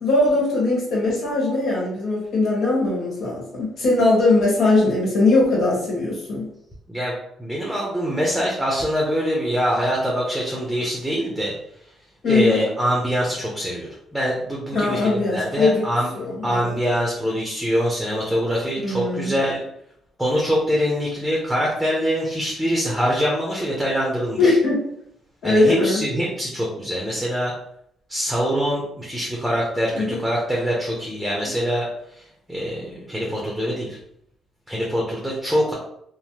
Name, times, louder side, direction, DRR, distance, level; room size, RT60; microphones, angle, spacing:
voice 1, 0.0-6.4 12.2-12.7 14.7-15.8 16.1-16.8 18.8-19.3 24.4-24.8 25.4-26.0 29.9-30.2 31.4-31.5, left 2 dB, 70° left, -5 dB, 1.4 m, -20 dB
voice 2, 7.4-11.5 12.3-16.1 16.4-19.6 20.2-24.5 25.4-27.5 28.1-31.9 32.1-34.0 34.7-35.7, equal, ahead, -3 dB, 0.7 m, -24 dB
3.1 x 2.1 x 2.9 m, 0.75 s
cardioid pair, 90°, 0 cm